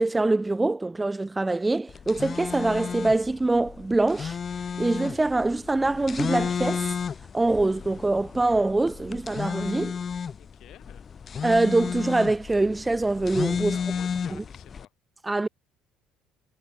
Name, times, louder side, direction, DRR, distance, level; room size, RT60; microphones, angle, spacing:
voice 1, 0.0-4.4 4.8-6.9 7.3-10.0 11.4-13.8 15.2-15.5, right 2 dB, 15° right, 0.4 m, -24 dB
sound 1, 1.9-14.9, left 6 dB, 40° left, 0.7 m, -32 dB
voice 2, 10.3-11.1 13.6-14.9, left 13 dB, 60° left, 5.1 m, -50 dB
supercardioid pair, 75°, 0 cm